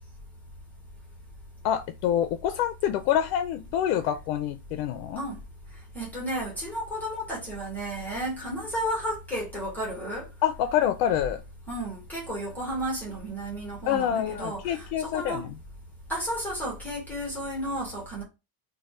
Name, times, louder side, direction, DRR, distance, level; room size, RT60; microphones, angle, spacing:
voice 1, 1.6-5.2 10.4-11.4 13.9-15.5, left 10 dB, 70° left, 0.5 m, -26 dB
voice 2, 5.9-10.3 11.7-15.4 16.1-18.2, equal, 5° left, 0.9 m, -33 dB
3.2 x 2.2 x 4.1 m
cardioid pair, 160°, 45 cm